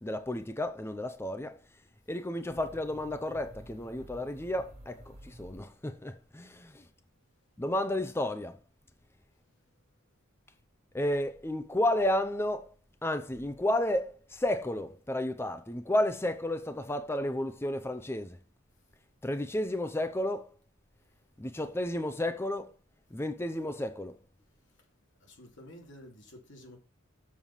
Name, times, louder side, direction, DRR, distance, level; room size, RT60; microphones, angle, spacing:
voice 1, 0.0-1.6 2.1-6.7 7.6-8.6 10.9-12.7 13.0-18.4 19.2-20.5 21.4-22.7 23.1-24.2, left 1 dB, 10° left, 0.6 m, -32 dB
sound 1, 2.5-6.2, equal, 35° right, 2.3 m, -51 dB
voice 2, 25.2-26.8, left 1 dB, 60° left, 2.6 m, -51 dB
7.3 x 6.4 x 5.4 m
head